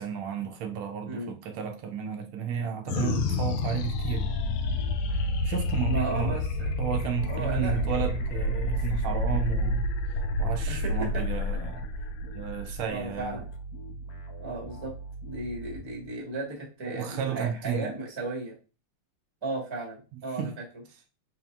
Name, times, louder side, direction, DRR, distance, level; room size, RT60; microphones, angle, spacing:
voice 1, 0.0-4.4 5.4-6.4 6.8-9.9 10.4-11.9 12.3-13.4 16.8-17.9 20.4-20.5, right 8 dB, 80° right, 1.4 m, -32 dB
sound 1, 2.9-13.5, left 2 dB, 80° left, 1.4 m, -29 dB
sound 2, 4.1-16.3, right 3 dB, 65° left, 0.9 m, -42 dB
voice 2, 5.9-6.7 7.3-7.8 10.7-11.2 12.9-13.5 14.4-14.9 15.2-18.5 19.4-20.5, right 2 dB, 20° right, 0.9 m, -35 dB
4.2 x 3.9 x 2.3 m
omnidirectional pair, 2.4 m